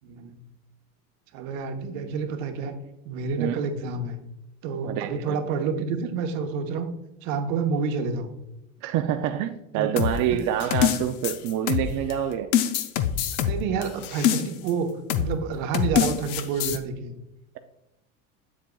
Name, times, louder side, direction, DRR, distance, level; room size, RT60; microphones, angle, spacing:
voice 1, 0.0-0.3 1.3-2.7 3.0-4.2 4.6-6.9 7.2-8.3 9.8-10.0 10.3-10.4 13.4-17.1, right 5 dB, 75° right, 6 dB, 1.1 m, -29 dB
voice 2, 4.8-5.4 8.8-12.5, right 10 dB, 50° right, 7 dB, 0.5 m, -26 dB
sound 1, 10.0-12.1 12.5-14.7 15.1-15.3 15.7-16.8, left 9 dB, 65° left, 0.7 m, -24 dB
7.5 x 7.4 x 2.3 m, 0.89 s
supercardioid pair, 115°, 39 cm